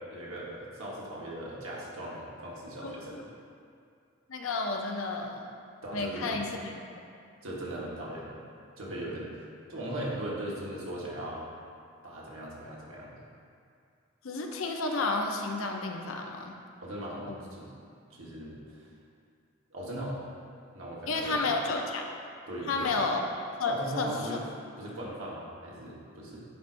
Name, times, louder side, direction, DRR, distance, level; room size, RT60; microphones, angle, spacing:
voice 1, 0.0-3.2 5.8-6.5 7.4-8.3 8.8-9.3 9.7-11.5 12.0-13.1 16.8-17.7 18.1-18.9 19.7-20.2 20.7-21.6 22.5-23.1 23.6-24.4 24.8-26.4, right 1 dB, 85° right, -5 dB, 1.4 m, -39 dB
voice 2, 4.3-5.5 5.9-6.7 14.2-16.6 17.3-17.4 21.1-22.1 22.7-23.2 23.6-24.4, left 3 dB, 80° left, 2 dB, 0.6 m, -31 dB
10.0 x 4.3 x 2.6 m, 2.3 s
head